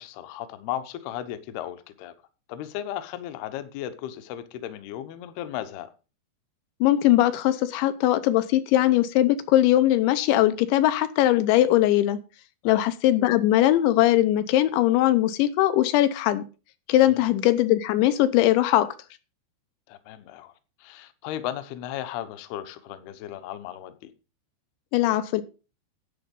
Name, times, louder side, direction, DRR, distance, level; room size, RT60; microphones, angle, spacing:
voice 1, 0.0-2.1 2.5-5.9 12.6-12.8 17.1-17.3 19.9-20.5 20.8-24.1, left 11 dB, 70° left, 2.8 m, -35 dB
voice 2, 6.8-12.2 12.6-16.4 16.9-18.9 24.9-25.4, left 14 dB, 90° left, 3.2 m, -20 dB
10.5 x 9.0 x 5.3 m
omnidirectional pair, 5.2 m